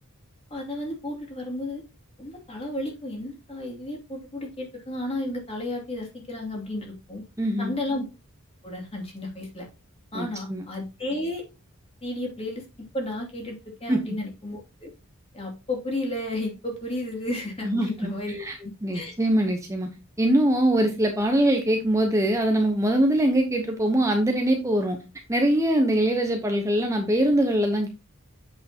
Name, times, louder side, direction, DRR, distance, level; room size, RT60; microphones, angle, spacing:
voice 1, 0.5-1.8 2.2-7.2 7.6-8.0 8.6-9.7 10.1-11.4 12.0-12.6 12.9-14.9 15.3-19.1, left 1 dB, 30° left, 0 dB, 2.5 m, -33 dB
voice 2, 7.4-7.7 10.1-10.6 13.9-14.0 17.6-18.1 18.4-18.6 18.8-19.9 20.2-25.0 25.3-27.9, right 1 dB, 15° right, 3 dB, 0.8 m, -22 dB
7.9 x 6.4 x 2.8 m, 0.27 s
head